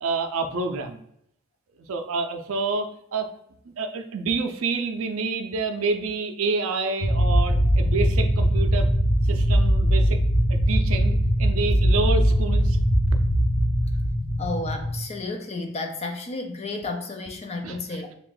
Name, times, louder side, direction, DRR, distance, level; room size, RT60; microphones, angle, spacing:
voice 1, 0.0-1.0 1.8-3.3 3.7-8.9 9.2-10.2 10.5-12.8 17.6-18.0, right 4 dB, 70° right, 6 dB, 0.4 m, -28 dB
sound 1, 7.0-15.0, equal, 75° left, 0.7 m, -21 dB
voice 2, 14.4-18.1, left 3 dB, 30° left, 5 dB, 0.4 m, -32 dB
3.4 x 2.4 x 3.7 m, 0.73 s
head